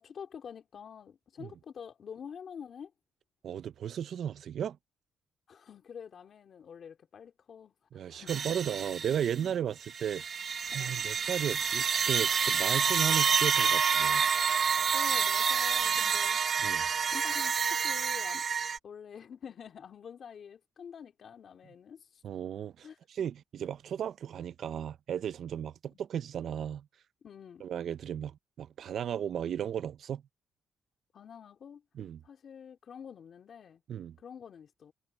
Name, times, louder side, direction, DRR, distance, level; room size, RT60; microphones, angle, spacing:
voice 1, 0.0-2.9 5.5-8.4 10.7-11.0 14.9-16.8 17.1-18.4 18.8-22.2 22.8-23.0 25.9-26.0 27.2-27.7 31.1-31.8 32.2-33.8 34.2-34.9, left 7 dB, 55° left, 2.6 m, -47 dB
voice 2, 3.4-4.8 7.9-10.2 10.7-14.2 16.6-16.9 22.2-26.8 27.6-30.2 32.0-32.2 33.9-34.2, right 9 dB, 65° right, 0.6 m, -35 dB
sound 1, 8.3-9.5 9.8-18.8, right 6 dB, 50° right, 1.2 m, -28 dB
cardioid pair, 90°, 0 cm